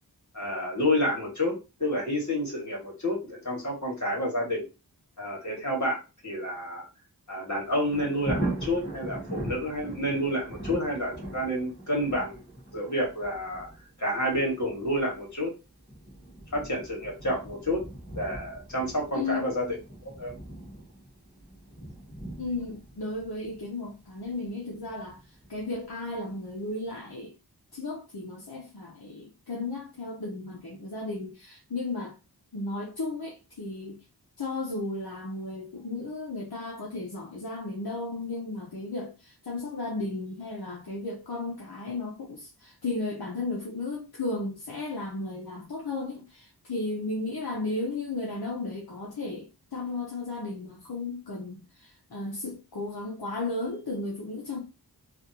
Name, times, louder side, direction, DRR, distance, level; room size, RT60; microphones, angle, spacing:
voice 1, 0.3-4.7 5.2-6.0 6.2-6.9 7.3-12.4 12.7-13.7 14.0-15.5 16.5-17.8 18.2-19.8 20.0-20.4, equal, 45° left, 1.8 m, -29 dB
Thunder, 7.6-26.4 26.8-26.9, right 1 dB, 25° left, 1.3 m, -40 dB
voice 2, 19.1-19.5 22.4-27.3 27.7-32.1 32.5-34.0 34.4-54.6, left 2 dB, 65° left, 0.9 m, -34 dB
3.3 x 2.5 x 2.8 m
wide cardioid pair, 50°, 40 cm